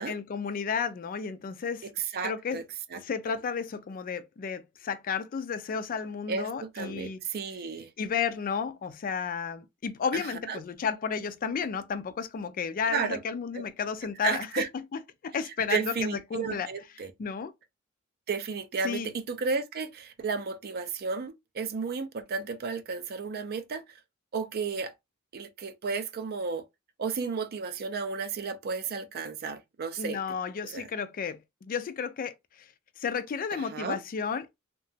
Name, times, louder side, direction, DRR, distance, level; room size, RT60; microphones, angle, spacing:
voice 1, 0.1-1.9 2.2-2.6 2.9-7.2 8.0-14.5 15.2-16.7 17.2-17.5 18.8-19.1 30.0-32.3 33.0-34.5, left 6 dB, 45° left, 0.3 m, -32 dB
voice 2, 1.8-2.6 2.9-3.0 6.3-7.9 10.1-10.6 12.9-13.2 13.5-13.6 14.2-14.7 15.4-17.1 18.3-23.8 24.3-24.9 25.3-26.6 27.0-30.2 30.6-30.9 33.5-34.0, right 5 dB, 50° right, 0.4 m, -33 dB
2.8 x 2.2 x 2.6 m
head